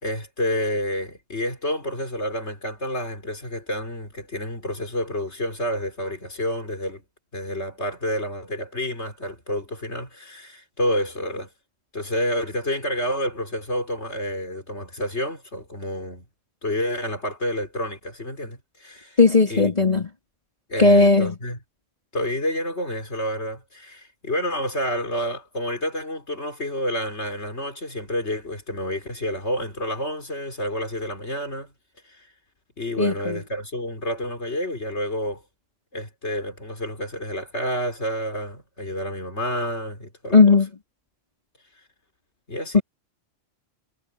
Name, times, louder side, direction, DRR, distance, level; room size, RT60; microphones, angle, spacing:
voice 1, 0.0-7.0 7.3-11.5 11.9-16.2 16.6-19.2 19.5-20.0 20.7-21.6 22.1-31.7 32.1-32.3 32.8-35.4 35.9-40.4 42.5-42.8, equal, 65° left, 4.8 m, -29 dB
voice 2, 19.2-20.1 20.8-21.4 33.0-33.4 40.3-40.7 42.7-42.8, left 3 dB, 35° left, 3.5 m, -16 dB
omnidirectional pair, 1.2 m